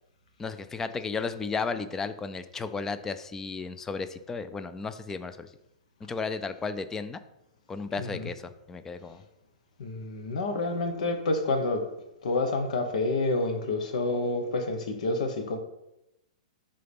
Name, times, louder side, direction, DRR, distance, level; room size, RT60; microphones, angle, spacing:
voice 1, 0.4-5.5 6.0-7.2 7.7-9.2, left 4 dB, 10° left, 11 dB, 0.4 m, -34 dB
voice 2, 7.9-8.3 9.8-11.8 12.2-15.6, left 2 dB, 70° left, 6 dB, 1.3 m, -28 dB
11.0 x 3.8 x 3.6 m, 0.88 s
hypercardioid pair, 150°, 4 cm